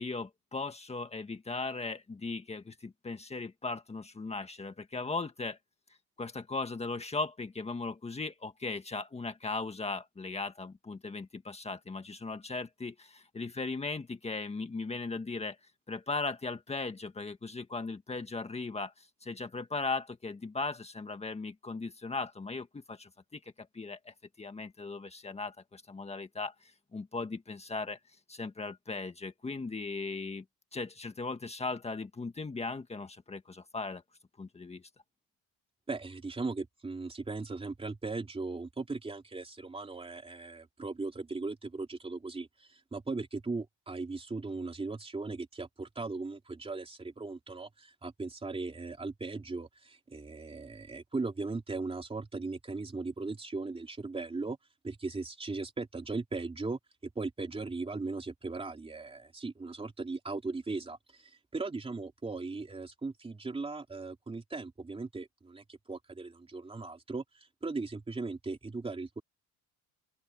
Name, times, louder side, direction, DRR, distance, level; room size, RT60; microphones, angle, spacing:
voice 1, 0.0-5.6 6.2-15.6 15.9-28.0 28.3-30.4 30.7-34.0 34.4-34.8, left 3 dB, 15° left, 1.7 m, -38 dB
voice 2, 35.9-54.6 54.8-56.8 57.1-69.2, right 3 dB, 15° right, 3.1 m, -38 dB
open air
cardioid pair, 140°, 37 cm